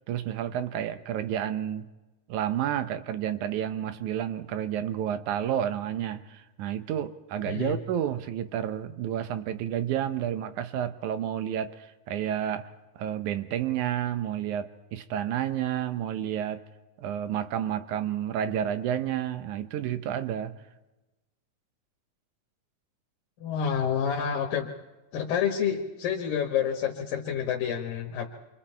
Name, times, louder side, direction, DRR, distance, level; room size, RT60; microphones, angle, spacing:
voice 1, 0.1-1.9 2.3-11.8 12.1-16.6 17.0-20.6, right 10 dB, 70° right, 11 dB, 2.1 m, -30 dB
voice 2, 7.5-7.8 23.4-24.7 25.1-28.3, left 8 dB, 80° left, 0 dB, 3.0 m, -28 dB
28.5 x 25.0 x 4.5 m, 1.1 s
omnidirectional pair, 3.9 m